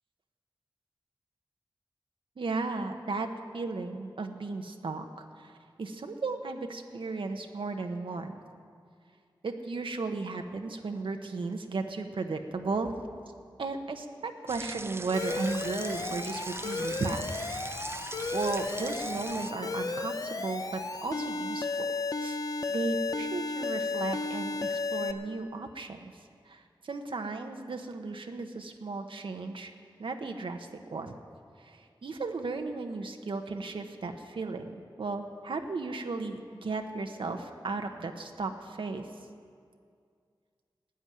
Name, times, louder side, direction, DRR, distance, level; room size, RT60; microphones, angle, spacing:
voice 1, 2.4-3.3 3.5-5.0 5.4-8.4 9.4-12.9 13.6-17.4 18.3-21.9 22.2-22.4 22.7-26.1 26.5-29.7 30.0-31.1 31.6-39.0, right 3 dB, 75° right, 5 dB, 1.0 m, -35 dB
sound 1, 14.5-19.5, right 2 dB, 30° right, 0.6 m, -41 dB
Alarm, 15.1-25.1, left 3 dB, 45° left, 0.7 m, -34 dB
13.5 x 9.0 x 9.6 m, 2.2 s
wide cardioid pair, 95°, 9 cm